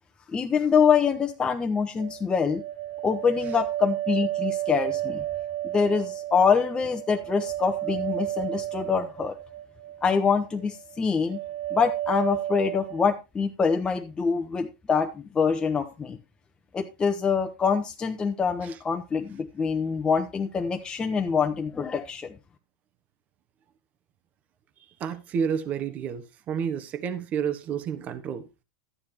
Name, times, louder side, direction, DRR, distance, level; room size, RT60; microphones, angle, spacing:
voice 1, 0.3-2.6 3.0-5.2 5.7-9.3 10.0-11.4 11.7-16.2 16.7-22.4, left 6 dB, 20° left, 1.1 m, -25 dB
sound 1, 2.0-10.1 10.4-11.0 11.3-13.0, right 14 dB, 80° right, 2.9 m, -32 dB
voice 2, 25.0-28.5, right 7 dB, 40° right, 1.3 m, -30 dB
12.5 x 9.6 x 2.9 m
hypercardioid pair, 100°, 4 cm